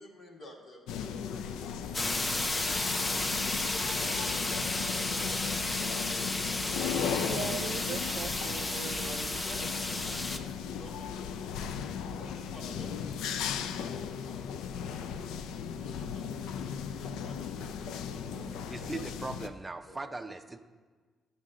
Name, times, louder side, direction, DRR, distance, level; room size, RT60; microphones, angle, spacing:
voice 1, 0.0-2.9 3.6-6.9 8.4-11.6 12.2-14.5 15.0-15.3 15.8-18.9 19.9-20.1, left 1 dB, 55° left, 0 dB, 1.7 m, -52 dB
sound 1, 0.9-19.5, left 7 dB, 90° left, 0.4 m, -37 dB
sound 2, 1.8-9.8, right 1 dB, ahead, 1.1 m, -46 dB
sound 3, 1.9-10.4, left 2 dB, 25° left, 0.6 m, -33 dB
voice 2, 7.2-9.4, right 7 dB, 70° right, 6 dB, 0.3 m, -40 dB
voice 3, 18.7-20.6, right 3 dB, 20° right, 7 dB, 0.5 m, -39 dB
12.0 x 6.4 x 3.7 m, 1.4 s
cardioid pair, 90°, 0 cm